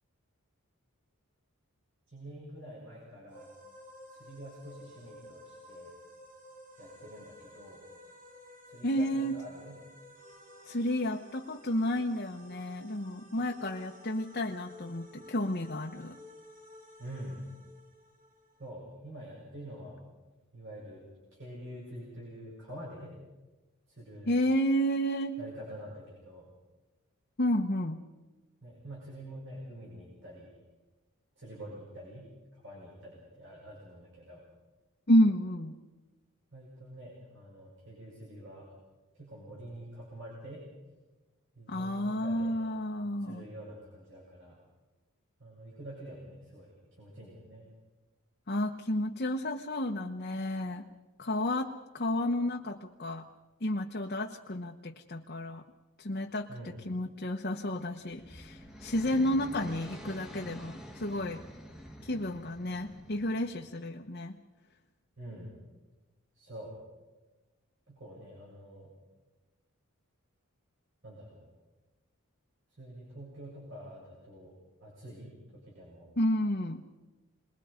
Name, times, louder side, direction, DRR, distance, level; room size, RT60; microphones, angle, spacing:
voice 1, 2.1-3.5 4.1-5.9 6.8-7.8 8.7-9.8 17.0-17.4 18.6-20.0 20.5-21.0 21.3-23.1 23.9-24.3 25.4-26.5 28.6-30.5 31.4-34.4 36.5-38.7 39.1-40.6 41.6-42.8 43.2-44.6 45.4-47.6 56.5-56.8 65.2-65.5 66.3-66.8 67.9-68.9 71.0-71.4 72.8-74.5 74.8-76.1, right 1 dB, 55° right, -5 dB, 7.2 m, -46 dB
sound 1, 3.3-18.7, left 1 dB, 35° right, 3.3 m, -53 dB
voice 2, 8.8-9.4 10.7-16.2 24.3-25.4 27.4-28.0 35.1-35.8 41.7-43.4 48.5-50.9 51.2-53.3 53.6-55.6 56.0-61.4 62.0-64.4 76.2-76.8, equal, 45° left, 1 dB, 1.1 m, -31 dB
sound 2, 57.9-63.9, equal, ahead, 1.6 m, -47 dB
29.0 x 21.5 x 5.2 m, 1.2 s
head